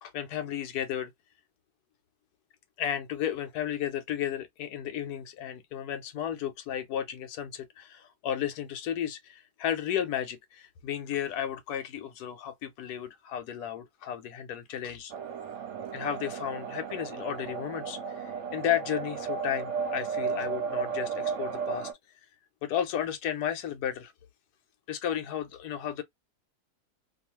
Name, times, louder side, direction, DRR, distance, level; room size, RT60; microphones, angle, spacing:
voice 1, 0.0-1.1 2.8-15.1 15.9-21.9 22.6-24.1 24.9-26.0, left 10 dB, 80° left, 1.1 m, -33 dB
sound 1, 15.1-21.9, right 6 dB, 60° right, 0.9 m, -34 dB
2.6 x 2.4 x 2.9 m
omnidirectional pair, 1.7 m